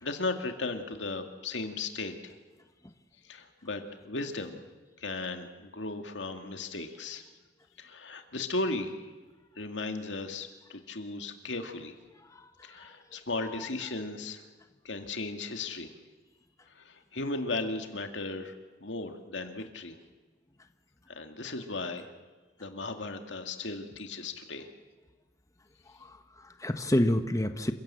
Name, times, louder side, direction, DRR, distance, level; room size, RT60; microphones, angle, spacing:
voice 1, 0.0-2.4 3.3-4.6 5.0-7.2 7.8-9.0 9.6-11.9 12.6-14.4 14.8-15.9 16.8-18.5 18.8-20.0 21.1-22.1 22.6-24.7, left 3 dB, 90° left, 5 dB, 2.2 m, -36 dB
voice 2, 12.3-12.9 26.0-27.7, left 1 dB, 20° left, 8 dB, 1.0 m, -29 dB
28.0 x 16.5 x 7.7 m, 1.3 s
head